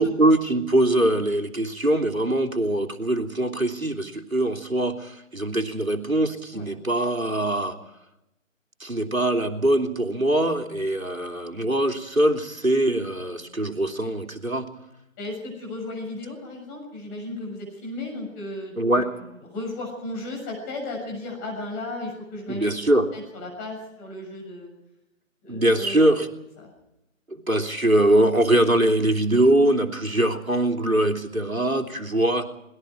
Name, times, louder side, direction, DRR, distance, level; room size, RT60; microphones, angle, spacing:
voice 1, 0.0-7.8 8.8-14.7 18.8-19.1 22.5-23.1 25.5-26.3 27.3-32.5, right 1 dB, 90° right, 4 dB, 3.2 m, -22 dB
voice 2, 15.2-22.7 23.1-24.7 25.4-26.0 26.6-26.7, left 2 dB, 15° left, -1 dB, 6.8 m, -35 dB
28.5 x 21.0 x 4.7 m, 0.89 s
figure-of-eight pair, 155°, 40 cm